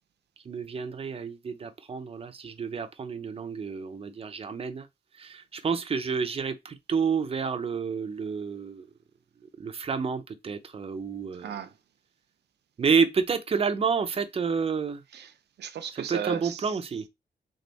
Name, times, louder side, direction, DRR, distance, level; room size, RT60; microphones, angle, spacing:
voice 1, 0.5-4.9 5.2-8.9 9.6-11.5 12.8-15.0 16.1-17.0, right 5 dB, 35° right, 0.6 m, -29 dB
voice 2, 11.4-11.7 15.1-16.8, right 7 dB, 75° right, 0.7 m, -35 dB
3.5 x 3.4 x 4.0 m
wide cardioid pair, 150°, 18 cm